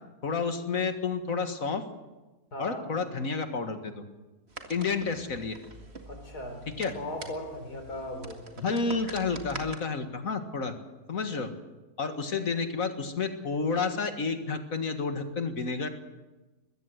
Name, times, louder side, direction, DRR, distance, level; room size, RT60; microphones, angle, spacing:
voice 1, 0.2-1.8 2.6-4.0 4.7-5.6 6.8-6.9 8.6-10.7 11.1-11.5 12.0-15.9, left 4 dB, 60° left, 7 dB, 2.2 m, -30 dB
voice 2, 2.5-2.9 6.1-6.6 6.9-8.4, left 1 dB, 85° left, 4 dB, 4.4 m, -37 dB
sound 1, 4.5-9.8, right 2 dB, 40° right, 2.3 m, -45 dB
22.0 x 16.0 x 7.9 m, 1.1 s
omnidirectional pair, 1.6 m